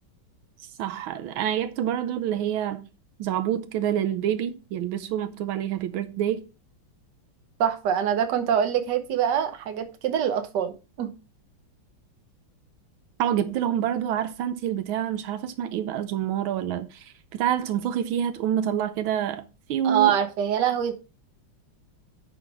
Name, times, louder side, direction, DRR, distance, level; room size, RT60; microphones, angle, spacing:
voice 1, 0.6-2.9 3.2-6.4 13.2-19.4 19.7-20.1, right 10 dB, 85° right, 1.5 m, -27 dB
voice 2, 7.6-11.1 19.8-20.9, right 9 dB, 65° right, 1.5 m, -24 dB
10.0 x 4.0 x 4.8 m
omnidirectional pair, 2.2 m